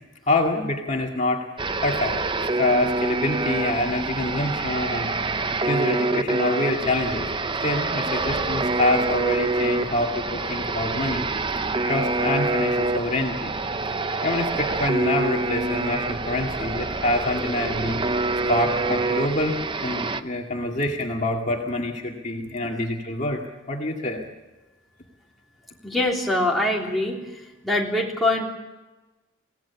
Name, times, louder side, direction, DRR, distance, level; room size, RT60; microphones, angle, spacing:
voice 1, 0.3-1.5 1.8-2.2 2.6-5.1 5.6-7.3 7.6-11.2 11.8-13.5 14.1-18.0 18.5-23.4 23.7-24.2, left 1 dB, 35° left, 0 dB, 2.2 m, -26 dB
sound 1, 1.6-20.2, right 3 dB, 25° right, 0.7 m, -26 dB
voice 2, 25.8-28.5, left 1 dB, ahead, -3 dB, 3.4 m, -24 dB
24.5 x 17.0 x 7.1 m, 1.1 s
head